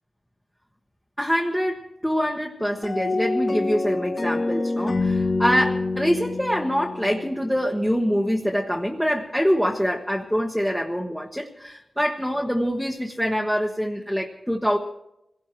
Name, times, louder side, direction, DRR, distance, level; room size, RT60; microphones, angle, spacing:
voice 1, 1.2-14.8, equal, 5° left, -1 dB, 1.2 m, -25 dB
sound 1, 2.8-8.0, left 3 dB, 45° left, 1.8 m, -27 dB
26.5 x 17.5 x 3.1 m, 0.83 s
wide cardioid pair, 125°, 0 cm